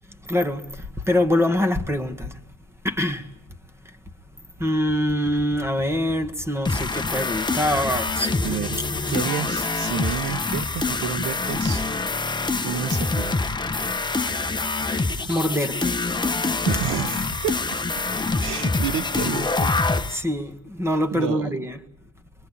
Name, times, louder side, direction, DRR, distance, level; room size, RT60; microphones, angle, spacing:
voice 1, 0.3-2.4 2.8-3.3 4.6-8.6 9.0-9.1 14.0-14.3 14.8-16.0 20.1-21.8, left 1 dB, 10° right, 1.8 m, -25 dB
sound 1, 6.7-20.2, left 3 dB, 15° left, 1.0 m, -25 dB
voice 2, 8.4-11.8 12.6-13.3 15.2-15.3 16.6-17.8 18.4-19.7 21.1-21.6, right 9 dB, 80° right, 1.3 m, -30 dB
28.0 x 22.0 x 8.5 m
cardioid pair, 90°, 30 cm